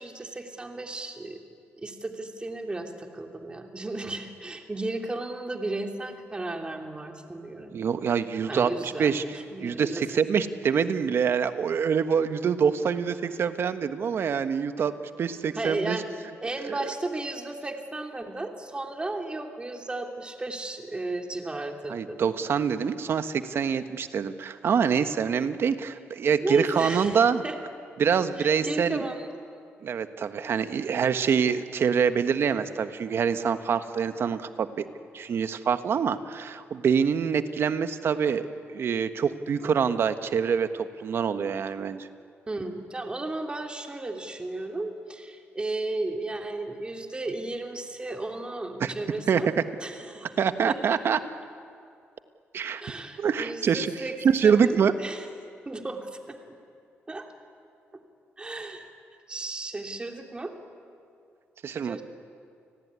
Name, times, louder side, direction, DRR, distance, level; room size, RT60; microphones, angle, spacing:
voice 1, 0.0-1.4 1.8-7.8 8.5-10.0 10.4-10.5 15.5-16.1 16.4-22.2 26.4-27.6 28.4-29.3 42.5-49.5 49.8-50.3 50.7-51.0 52.8-54.2 54.4-55.3 55.7-56.5 57.1-57.3 57.9-58.0 58.4-58.9 59.3-60.5 61.8-62.0, right 2 dB, 20° right, 3 dB, 2.9 m, -34 dB
voice 2, 7.7-9.2 9.6-14.9 15.2-16.0 16.6-16.7 21.9-27.4 28.0-29.0 29.8-34.9 35.1-38.5 38.7-42.1 48.8-48.9 49.3-49.5 50.4-51.2 52.5-52.8 53.2-53.9 54.2-54.9 61.6-62.0, right 7 dB, 60° right, 10 dB, 1.3 m, -25 dB
29.5 x 19.0 x 9.7 m, 2.3 s
cardioid pair, 85°, 5 cm